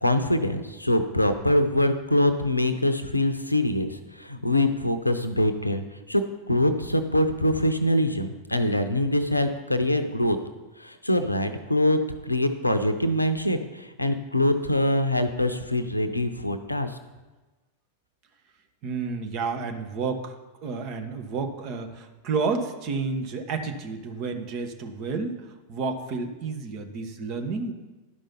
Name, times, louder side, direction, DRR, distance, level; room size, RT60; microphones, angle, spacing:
voice 1, 0.0-6.2 6.5-10.4 10.8-12.0 12.3-17.0, left 1 dB, 85° left, 10 dB, 0.6 m, -24 dB
voice 2, 18.8-20.3 20.6-27.7, right 4 dB, 40° right, 6 dB, 1.1 m, -30 dB
11.5 x 5.4 x 5.6 m, 1.2 s
figure-of-eight pair, 90°, 0 cm